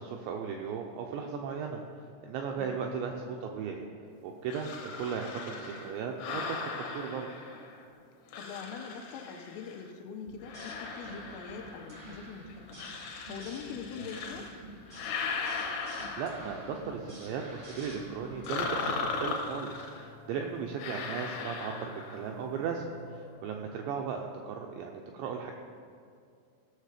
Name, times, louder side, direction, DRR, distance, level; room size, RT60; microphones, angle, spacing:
voice 1, 0.0-1.8 2.2-3.9 4.2-7.3 14.0-14.1 15.8-22.8 23.1-25.5, right 6 dB, 90° right, 2 dB, 2.5 m, -36 dB
sound 1, 4.5-7.8 8.3-9.9 10.4-12.1 12.7-14.5 14.9-16.8 18.5-20.1 20.8-22.3, left 4 dB, 70° left, 2.6 m, -38 dB
voice 2, 8.3-12.8 13.3-14.5 20.3-20.6, left 7 dB, 85° left, 5 dB, 3.4 m, -43 dB
sound 2, 10.3-19.0, right 1 dB, 55° right, 0.5 m, -48 dB
sound 3, 17.4-23.6, equal, 45° left, 0.8 m, -52 dB
16.5 x 6.5 x 4.9 m, 2.3 s
omnidirectional pair, 5.8 m